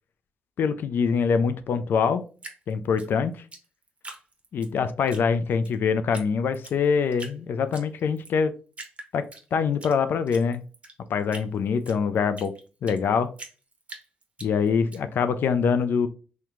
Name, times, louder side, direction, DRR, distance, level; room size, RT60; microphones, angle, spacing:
voice 1, 0.6-2.2 2.7-3.4 4.5-8.5 9.1-9.2 9.5-10.6 11.1-12.5 12.8-13.3 14.4-16.1, left 6 dB, 70° left, 11 dB, 0.3 m, -24 dB
Drip, 2.4-4.7 5.1-5.7 6.1-6.3 6.5-7.4 7.7-8.3 8.7-9.9 10.3-13.0 13.4-15.0, right 2 dB, 35° right, 0.8 m, -43 dB
2.9 x 2.2 x 3.6 m, 0.36 s
cardioid pair, 70°, 4 cm